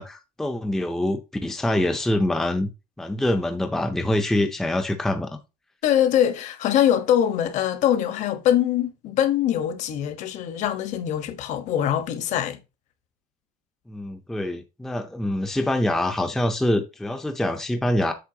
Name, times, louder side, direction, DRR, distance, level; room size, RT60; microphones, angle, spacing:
voice 1, 0.0-2.7 3.0-5.4 13.9-18.1, left 1 dB, 5° left, 0.6 m, -25 dB
voice 2, 5.8-12.6, left 10 dB, 50° left, 1.2 m, -23 dB
8.3 x 6.7 x 2.8 m
cardioid pair, 175°, 16 cm